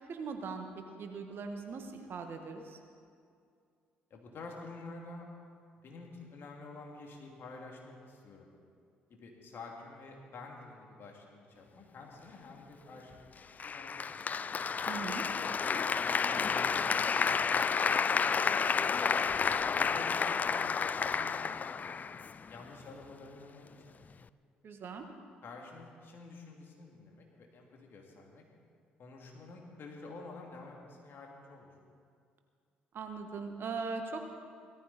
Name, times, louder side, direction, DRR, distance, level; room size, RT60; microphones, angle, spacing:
voice 1, 0.1-0.7 1.0-2.8 14.9-15.2 24.6-25.0 32.9-34.2, right 4 dB, 50° right, 5 dB, 1.6 m, -40 dB
voice 2, 4.1-5.2 5.8-8.5 9.1-14.2 15.4-19.3 19.7-22.0 22.5-24.0 25.4-28.5 29.0-31.7, left 3 dB, 50° left, 0 dB, 2.7 m, -49 dB
Applause, 13.6-22.6, left 6 dB, 35° left, 0.4 m, -31 dB
17.5 x 14.0 x 4.2 m, 2.3 s
hypercardioid pair, 50°, 5 cm